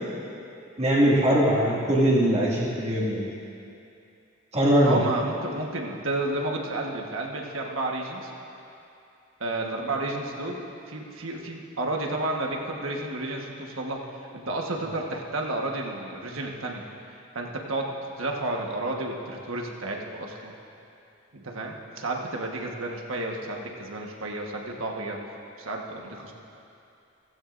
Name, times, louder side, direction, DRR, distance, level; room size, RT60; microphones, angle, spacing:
voice 1, 0.8-3.3 4.5-5.0, equal, 30° right, -6 dB, 2.0 m, -21 dB
voice 2, 4.8-8.3 9.4-14.0 14.3-16.8 17.3-20.5 21.3-25.2 25.6-26.3, right 2 dB, 85° right, 0 dB, 1.4 m, -31 dB
15.5 x 15.5 x 2.6 m, 2.7 s
head